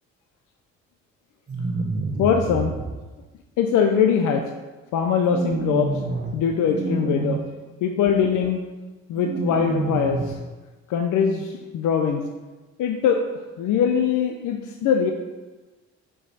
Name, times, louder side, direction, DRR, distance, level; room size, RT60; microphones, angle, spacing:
sound 1, 1.5-2.9 5.2-6.3 6.7-7.4 9.1-10.3, right 3 dB, 30° right, 0.8 m, -28 dB
voice 1, 2.2-2.7 3.6-4.4 4.9-6.0 6.3-7.4 7.8-8.6 9.1-10.2 10.9-12.2 12.8-13.2 13.6-15.1, left 7 dB, 80° left, 4 dB, 0.6 m, -22 dB
5.9 x 4.7 x 4.0 m, 1.2 s
cardioid pair, 90°, 30 cm